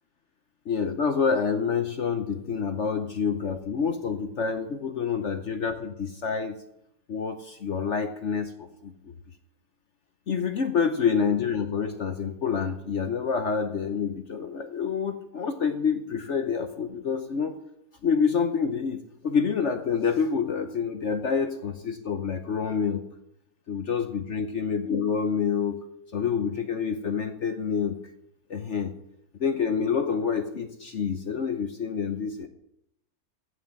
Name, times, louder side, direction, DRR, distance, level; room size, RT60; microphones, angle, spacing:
voice 1, 0.7-6.6 7.1-9.1 10.3-17.6 18.0-23.0 23.7-25.8 26.1-28.0 28.5-28.9 29.4-32.5, left 6 dB, 55° left, 8 dB, 0.8 m, -27 dB
15.0 x 5.6 x 7.6 m, 0.80 s
omnidirectional pair, 2.0 m